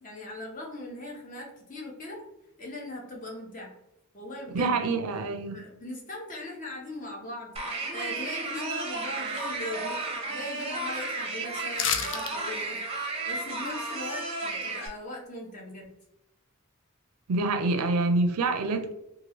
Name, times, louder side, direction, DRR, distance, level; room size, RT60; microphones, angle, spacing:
voice 1, 0.0-2.2 2.6-3.7 4.1-4.8 5.5-7.5 7.9-15.9, left 1 dB, 35° left, 0.8 m, -40 dB
voice 2, 4.5-5.6 17.3-18.9, right 3 dB, 85° right, 0.4 m, -26 dB
sound 1, 7.6-14.9, right 3 dB, 25° right, 0.6 m, -33 dB
sound 2, 11.7-12.3 12.7-12.8, left 8 dB, 55° left, 0.3 m, -28 dB
3.0 x 2.4 x 2.8 m
head